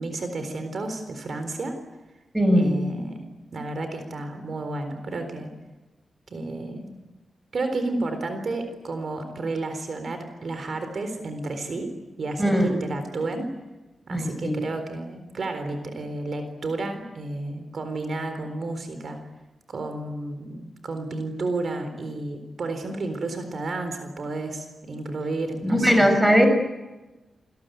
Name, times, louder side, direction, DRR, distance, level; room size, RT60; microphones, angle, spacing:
voice 1, 0.0-1.8 2.5-3.3 3.5-5.5 6.3-6.9 7.5-13.5 14.1-19.2 19.7-26.1, right 2 dB, 50° right, 7 dB, 4.0 m, -31 dB
voice 2, 2.3-2.8 12.4-12.7 14.1-14.6 25.6-26.5, equal, 5° right, 6 dB, 5.8 m, -19 dB
29.0 x 20.5 x 9.3 m, 1.1 s
wide cardioid pair, 160°, 0 cm